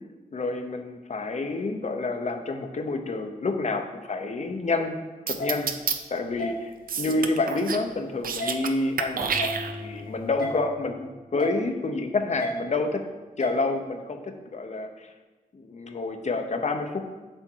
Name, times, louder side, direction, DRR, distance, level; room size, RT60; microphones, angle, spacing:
voice 1, 0.3-5.0 5.3-5.7 6.1-6.7 7.0-13.0 13.4-15.1 15.5-17.0, left 3 dB, 50° left, 6 dB, 0.8 m, -28 dB
sound 1, 5.3-6.0 6.9-7.9 8.1-8.7 9.0-10.0, right 6 dB, 75° right, 0.6 m, -29 dB
sound 2, 5.4-5.5 6.4-6.5 7.4-7.6 8.4-8.5 9.4-9.6 10.4-10.5 11.4-11.6 12.4-12.5 13.4-13.6, left 1 dB, 85° left, 1.6 m, -30 dB
sound 3, 9.2-12.0, left 1 dB, 20° right, 1.5 m, -41 dB
7.8 x 5.9 x 4.6 m, 1.2 s
wide cardioid pair, 80°, 15 cm